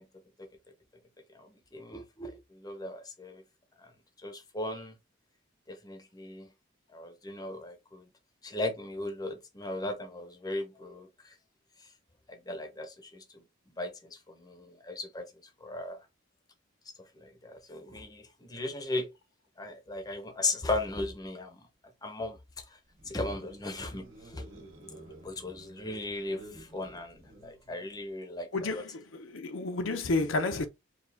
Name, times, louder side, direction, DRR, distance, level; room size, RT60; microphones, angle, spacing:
voice 1, 1.4-3.4 3.8-3.9 4.2-4.9 5.7-6.5 6.9-8.0 8.4-11.1 12.3-13.2 13.8-15.3 15.6-16.0 17.2-19.1 19.6-21.6 22.0-22.4 23.0-24.4 25.2-28.5 28.7-28.8, left 2 dB, 20° left, 0.7 m, -37 dB
sound 1, 22.9-28.0, right 1 dB, 75° right, 1.8 m, -51 dB
voice 2, 28.5-30.7, left 3 dB, 70° left, 0.7 m, -31 dB
4.7 x 2.3 x 3.4 m
head